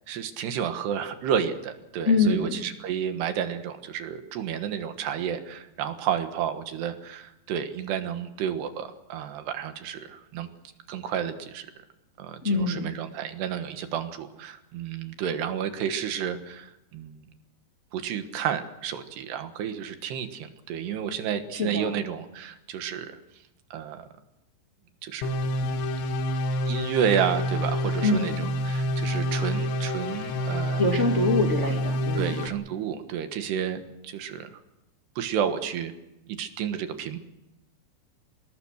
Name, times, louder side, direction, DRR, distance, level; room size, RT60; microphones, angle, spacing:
voice 1, 0.0-10.5 10.9-11.7 12.2-17.2 17.9-23.1 23.7-24.1 25.0-25.3 26.7-30.8 32.2-34.6 35.2-35.9 36.3-37.2, right 8 dB, 75° right, 8 dB, 3.5 m, -31 dB
voice 2, 2.0-2.6 12.4-12.9 21.5-22.0 28.0-28.5 30.8-32.4, left 2 dB, 25° left, 1 dB, 1.5 m, -24 dB
sound 1, 25.2-32.5, equal, 85° left, 3.9 m, -28 dB
25.5 x 21.0 x 6.4 m, 0.91 s
omnidirectional pair, 5.0 m